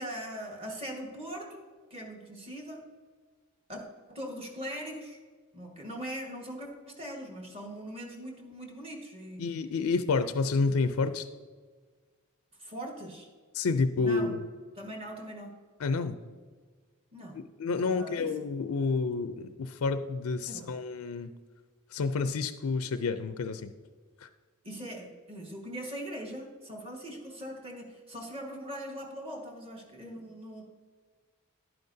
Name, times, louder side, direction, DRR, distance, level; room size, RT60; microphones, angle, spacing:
voice 1, 0.0-1.6 1.9-2.9 3.7-3.8 4.1-5.2 5.5-9.4 12.6-13.3 14.0-14.3 14.7-15.5 17.1-18.3 20.5-20.7 24.6-30.6, equal, 25° right, 1 dB, 1.5 m, -41 dB
voice 2, 9.4-11.2 13.5-14.4 15.8-16.2 17.6-21.3 21.9-23.7 24.2-24.3, left 4 dB, 75° left, 10 dB, 0.4 m, -29 dB
11.0 x 9.3 x 2.7 m, 1.5 s
head